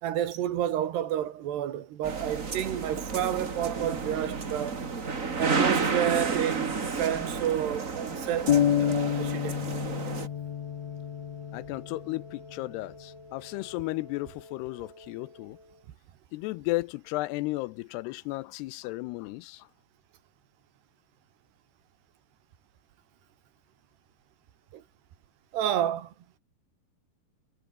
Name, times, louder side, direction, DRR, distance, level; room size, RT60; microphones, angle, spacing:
voice 1, 0.0-4.8 5.4-9.6 24.7-24.8 25.5-26.1, right 11 dB, 75° right, 4.0 m, -30 dB
sound 1, 2.0-10.3, right 4 dB, 30° right, 1.6 m, -31 dB
Wind instrument woodwind instrument, 8.0-15.9, left 2 dB, 10° left, 1.5 m, -49 dB
sound 2, 8.5-12.2, left 10 dB, 55° left, 2.1 m, -28 dB
voice 2, 11.5-15.6 16.3-19.7, left 20 dB, 85° left, 2.6 m, -34 dB
omnidirectional pair, 4.8 m